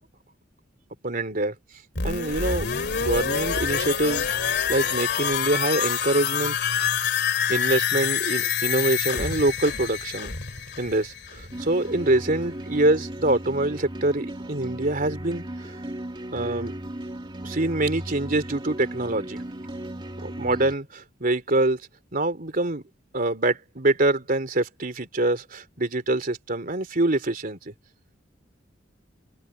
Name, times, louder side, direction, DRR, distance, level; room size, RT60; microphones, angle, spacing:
voice 1, 1.0-1.6 2.0-2.7 3.0-4.3 4.7-6.9 7.5-10.3 10.8-15.8 16.3-16.7 17.4-19.4 20.2-21.8 22.1-22.8 23.1-27.7, right 2 dB, 45° right, 3.5 m, -25 dB
sound 1, 2.0-11.7 12.0-12.1, left 7 dB, 60° left, 2.5 m, -26 dB
sound 2, 11.5-20.7, right 1 dB, 25° right, 2.5 m, -36 dB
head